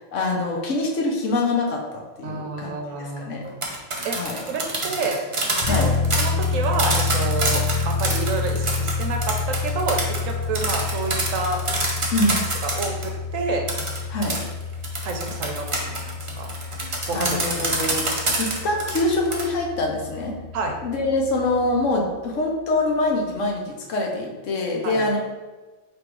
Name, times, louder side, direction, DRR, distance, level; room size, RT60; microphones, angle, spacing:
voice 1, 0.1-2.7 3.0-3.4 4.1-4.4 5.6-5.9 12.1-12.4 14.1-14.4 17.1-20.3 20.8-25.2, left 2 dB, 65° left, 0 dB, 1.0 m, -24 dB
voice 2, 2.2-3.5 4.0-5.2 5.7-11.6 12.6-13.7 15.0-16.5 17.1-17.9 20.5-20.8 24.8-25.0, right 3 dB, 70° right, 3 dB, 0.9 m, -29 dB
sound 1, 3.5-13.1 13.7-19.4, right 2 dB, 35° right, 0.5 m, -26 dB
sound 2, 5.6-22.0, left 5 dB, 45° left, 0.5 m, -29 dB
3.5 x 3.0 x 4.6 m, 1.3 s
omnidirectional pair, 1.5 m